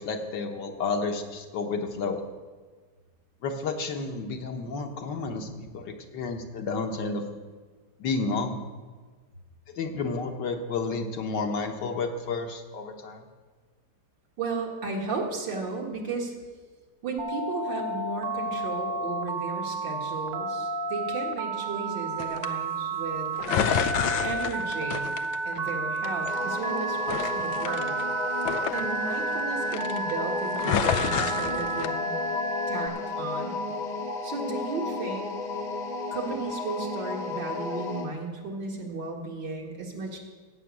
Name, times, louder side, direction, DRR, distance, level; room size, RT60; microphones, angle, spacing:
voice 1, 0.0-2.2 3.4-7.2 8.0-8.6 9.8-13.2, left 4 dB, 65° left, 4 dB, 1.6 m, -31 dB
voice 2, 14.4-16.3 17.0-23.3 24.2-25.1 25.5-28.0 28.7-32.2 32.7-33.7 34.2-35.4 36.1-40.2, right 3 dB, 70° right, 0 dB, 2.4 m, -34 dB
Telephone, 17.2-32.9, right 3 dB, 50° right, 1.2 m, -31 dB
sound 1, 22.2-22.5 23.4-25.7 26.0-26.7 27.1-29.4 29.7-30.1 30.5-31.9, left 8 dB, 90° left, 1.4 m, -29 dB
sound 2, 26.3-38.1, left 3 dB, 30° left, 1.0 m, -33 dB
15.0 x 5.7 x 8.2 m, 1.4 s
omnidirectional pair, 2.1 m